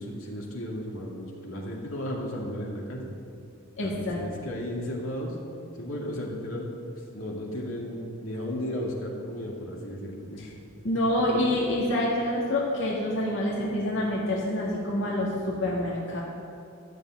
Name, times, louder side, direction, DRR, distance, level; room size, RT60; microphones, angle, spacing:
voice 1, 0.0-3.1 3.8-5.4 5.8-6.7 7.1-10.5, equal, 80° left, -2 dB, 2.5 m, -34 dB
voice 2, 3.8-4.2 10.4-10.5 10.8-16.2, left 1 dB, 65° left, -5 dB, 2.1 m, -27 dB
13.0 x 7.1 x 9.2 m, 2.5 s
head